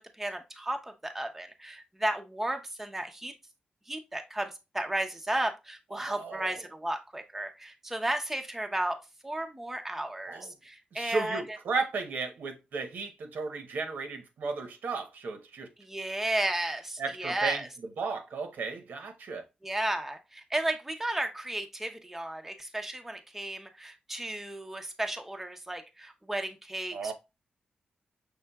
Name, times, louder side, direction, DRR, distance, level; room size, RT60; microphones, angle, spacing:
voice 1, 0.1-3.3 3.9-9.0 9.2-11.6 15.8-17.7 19.6-27.1, right 1 dB, 10° right, 0.6 m, -34 dB
voice 2, 5.9-6.5 10.3-10.5 10.9-15.7 17.0-17.6 18.0-19.4 26.9-27.1, right 4 dB, 85° right, 0.9 m, -34 dB
5.7 x 3.5 x 2.3 m
wide cardioid pair, 125°, 3 cm